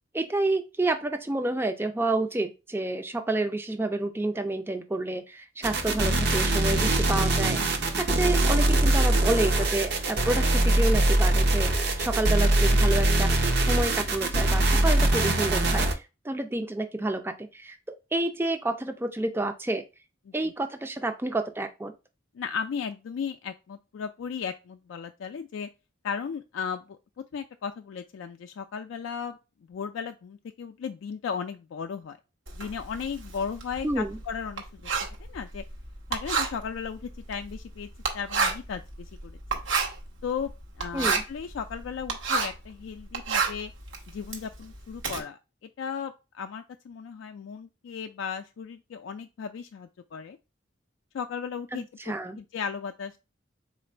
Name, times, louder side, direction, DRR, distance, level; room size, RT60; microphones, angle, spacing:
voice 1, 0.1-11.7 12.0-13.3 13.6-19.8 20.3-21.9 33.8-34.2 40.9-41.2 51.7-52.4, right 2 dB, 10° right, 7 dB, 0.4 m, -29 dB
sound 1, 5.6-15.9, right 2 dB, 55° right, 0.6 m, -23 dB
voice 2, 22.3-25.7 26.0-27.0 27.3-29.4 29.7-32.2 32.5-34.7 35.3-35.6 36.1-37.9 38.1-39.4 40.2-40.5 40.8-43.7 44.1-50.4 51.1-53.2, left 6 dB, 75° left, 7 dB, 0.3 m, -35 dB
Writing, 32.5-42.7 43.0-45.2, right 5 dB, 75° right, 1.0 m, -30 dB
3.8 x 2.5 x 4.3 m, 0.28 s
head